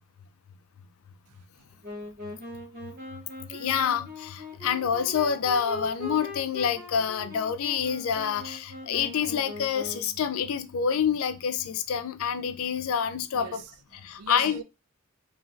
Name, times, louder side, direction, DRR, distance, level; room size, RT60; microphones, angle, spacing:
Wind instrument woodwind instrument, 1.8-10.2, left 2 dB, 45° right, 1.1 m, -41 dB
voice 1, 3.5-13.6 14.0-14.6, left 7 dB, 75° left, 0.4 m, -27 dB
voice 2, 13.3-14.6, right 8 dB, 85° right, 0.4 m, -42 dB
2.9 x 2.5 x 2.4 m
head